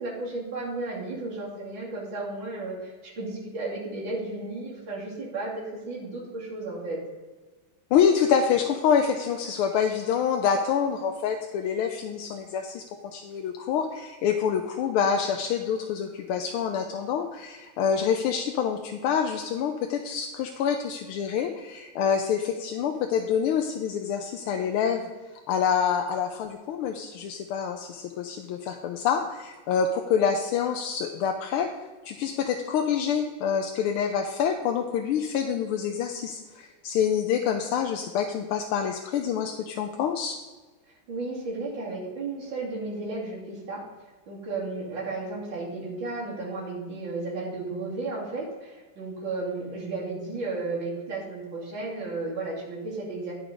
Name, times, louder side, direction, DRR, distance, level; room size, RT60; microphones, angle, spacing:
voice 1, 0.0-7.0 41.1-43.8 44.3-53.3, right 3 dB, 60° right, -5 dB, 3.2 m, -33 dB
voice 2, 7.9-12.8 13.1-25.0 25.5-31.7 32.0-40.4, left 7 dB, 90° left, 4 dB, 1.6 m, -26 dB
10.5 x 6.2 x 5.1 m, 1.3 s
omnidirectional pair, 2.3 m